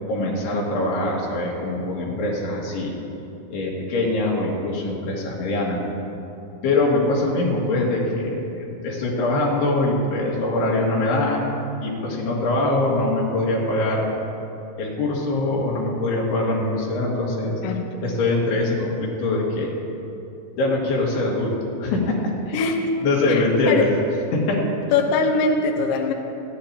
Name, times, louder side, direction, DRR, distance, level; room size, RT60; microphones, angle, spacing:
voice 1, 0.1-3.0 3.5-5.8 6.6-11.5 11.8-14.1 14.8-17.6 18.0-19.7 20.6-22.2 22.5-22.6 23.0-23.9 24.3-24.6, left 2 dB, 90° left, -3 dB, 4.1 m, -23 dB
voice 2, 23.3-23.9 24.9-26.1, left 4 dB, 70° left, 1 dB, 2.3 m, -22 dB
28.0 x 9.5 x 2.9 m, 2.8 s
omnidirectional pair, 4.5 m